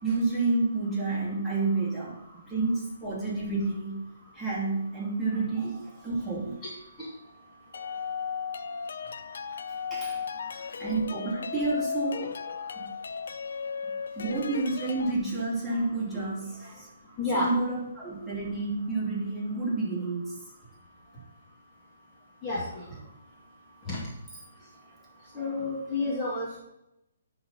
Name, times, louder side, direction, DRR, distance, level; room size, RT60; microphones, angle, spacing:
voice 1, 0.0-2.2 2.5-4.0 4.3-6.6 9.9-10.3 10.5-12.4 12.8-12.9 14.2-16.9 17.3-20.4 21.1-21.2 25.3-25.6, right 3 dB, 5° right, -8 dB, 2.7 m, -30 dB
sound 1, 7.7-15.1, left 6 dB, 75° left, 0.4 m, -35 dB
voice 2, 17.2-17.5 22.4-22.8 23.9-24.0 25.3-26.6, left 2 dB, 20° left, -6 dB, 2.0 m, -30 dB
10.0 x 4.1 x 5.5 m, 0.86 s
hypercardioid pair, 150°, 0 cm